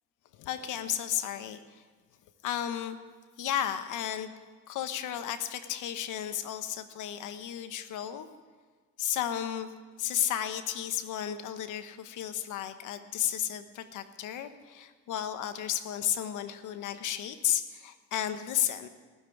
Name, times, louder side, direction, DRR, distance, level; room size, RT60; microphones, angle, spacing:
voice 1, 0.4-1.8 2.4-3.0 3.4-4.3 4.7-8.3 9.0-9.7 10.0-18.9, left 10 dB, 85° left, 10 dB, 1.1 m, -33 dB
18.5 x 7.5 x 9.8 m, 1.4 s
cardioid pair, 90°, 30 cm